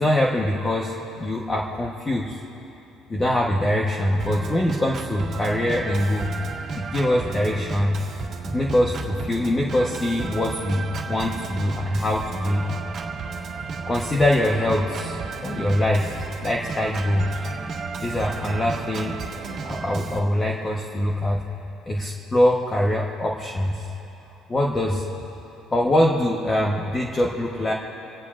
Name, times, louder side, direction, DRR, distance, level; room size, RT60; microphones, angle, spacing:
voice 1, 0.0-2.4 3.1-6.3 6.7-8.0 8.4-12.6 13.9-15.2 15.4-16.1 16.4-17.4 18.0-19.2 19.6-21.4 21.9-23.9 24.5-25.0 25.7-27.7, left 1 dB, 20° left, -1 dB, 1.1 m, -23 dB
Organ, 4.2-20.2, right 4 dB, 40° right, 1.9 m, -33 dB
26.5 x 17.5 x 2.5 m, 2.9 s
cardioid pair, 140°, 0 cm